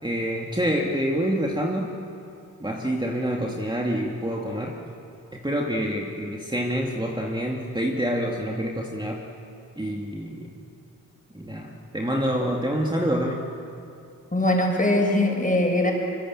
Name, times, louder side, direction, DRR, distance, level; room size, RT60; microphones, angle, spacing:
voice 1, 0.0-1.9 2.6-4.7 5.3-9.2 9.8-10.5 11.3-13.4, equal, 15° right, -1 dB, 2.4 m, -27 dB
voice 2, 14.3-15.9, left 1 dB, 25° left, 1 dB, 6.5 m, -21 dB
24.5 x 24.0 x 7.6 m, 2.6 s
cardioid pair, 50°, 35 cm